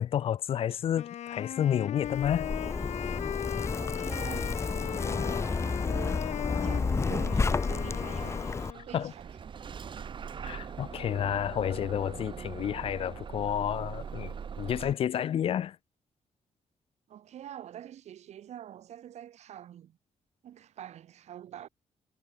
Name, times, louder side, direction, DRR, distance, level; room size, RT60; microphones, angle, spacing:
voice 1, 0.0-2.5 8.9-9.1 10.4-15.8, left 10 dB, 55° left, 0.5 m, -30 dB
Wind instrument woodwind instrument, 0.9-8.9, left 11 dB, 85° left, 3.7 m, -38 dB
Zipper (clothing), 2.0-8.7, left 4 dB, 25° left, 1.1 m, -31 dB
voice 2, 3.7-6.2 6.6-8.5 8.8-9.4 17.1-20.0 20.4-21.7, right 11 dB, 75° right, 4.7 m, -45 dB
Bus / Engine starting, 8.2-14.9, right 7 dB, 45° right, 2.6 m, -41 dB
cardioid pair, 135°, 11 cm